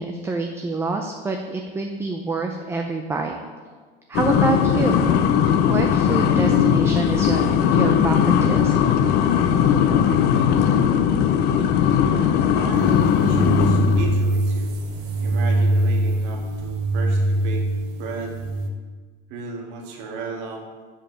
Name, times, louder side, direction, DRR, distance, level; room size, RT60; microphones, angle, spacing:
voice 1, 0.0-3.3 4.1-5.0 5.7-8.7, right 3 dB, 10° right, 3 dB, 0.5 m, -26 dB
sound 1, 4.1-14.2, left 8 dB, 55° left, 0.7 m, -19 dB
voice 2, 12.6-14.7 15.2-17.6 18.0-18.4 19.3-20.6, right 4 dB, 65° right, 0 dB, 1.7 m, -35 dB
sound 2, 12.7-18.7, right 1 dB, 85° right, 1.0 m, -23 dB
7.5 x 5.1 x 6.7 m, 1.5 s
cardioid pair, 150°, 20 cm